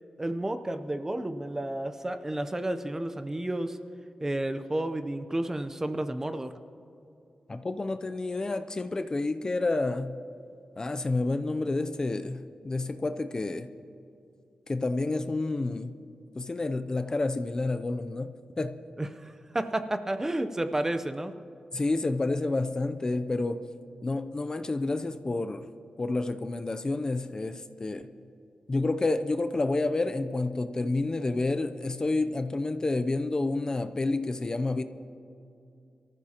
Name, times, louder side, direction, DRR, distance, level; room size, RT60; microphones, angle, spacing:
voice 1, 0.2-3.8 4.2-6.6 19.0-21.3, right 1 dB, 20° right, 9 dB, 0.7 m, -31 dB
voice 2, 7.5-10.2 10.8-13.7 14.7-15.9 16.4-18.8 21.7-23.6 24.0-25.6 26.0-28.0 28.7-34.8, left 2 dB, 30° left, 9 dB, 0.5 m, -29 dB
23.5 x 14.5 x 2.9 m, 2.7 s
wide cardioid pair, 105°, 2 cm